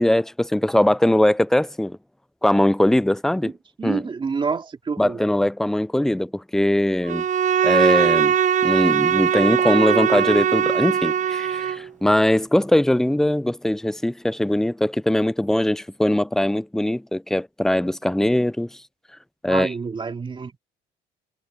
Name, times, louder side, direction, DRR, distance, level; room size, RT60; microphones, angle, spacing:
voice 1, 0.0-2.0 2.4-3.5 3.8-4.0 5.0-7.2 7.6-8.3 8.6-18.7 19.4-19.7, left 1 dB, 5° left, 0.3 m, -21 dB
voice 2, 3.8-5.2 19.5-20.6, right 5 dB, 30° right, 2.6 m, -28 dB
Bowed string instrument, 7.1-11.9, right 8 dB, 45° right, 1.0 m, -20 dB
cardioid pair, 110°, 17 cm